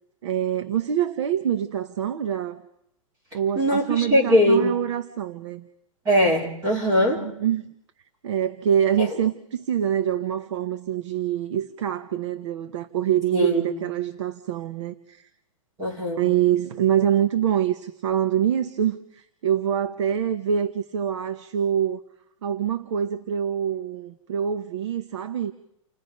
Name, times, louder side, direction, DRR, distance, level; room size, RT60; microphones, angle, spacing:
voice 1, 0.2-2.6 3.3-5.7 7.2-7.7 8.2-15.3 16.2-22.0 22.4-25.5, right 9 dB, 60° right, 9 dB, 1.1 m, -25 dB
voice 2, 3.6-4.8 6.0-7.2 9.0-9.1 13.3-13.7 15.8-16.2, equal, 20° right, -3 dB, 4.5 m, -21 dB
29.5 x 19.5 x 5.3 m, 0.77 s
supercardioid pair, 175°, 17 cm